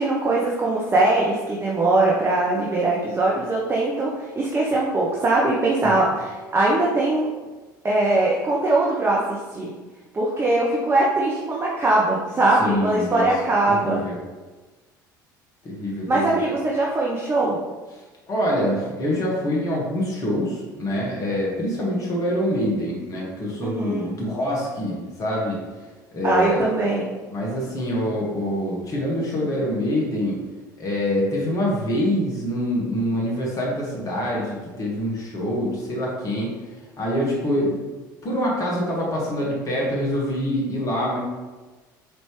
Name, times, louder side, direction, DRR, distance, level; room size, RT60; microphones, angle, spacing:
voice 1, 0.0-7.3 7.8-9.7 10.1-14.0 16.1-17.6 23.6-24.1 26.2-27.1, right 2 dB, 20° right, -4 dB, 0.7 m, -21 dB
voice 2, 12.6-13.3 13.7-14.2 15.6-16.4 18.3-25.6 26.1-26.7 27.3-30.4 30.8-36.5 37.0-37.8 38.2-41.2, equal, 30° left, -4 dB, 1.1 m, -25 dB
4.2 x 3.3 x 3.0 m, 1.3 s
figure-of-eight pair, 65°, 11 cm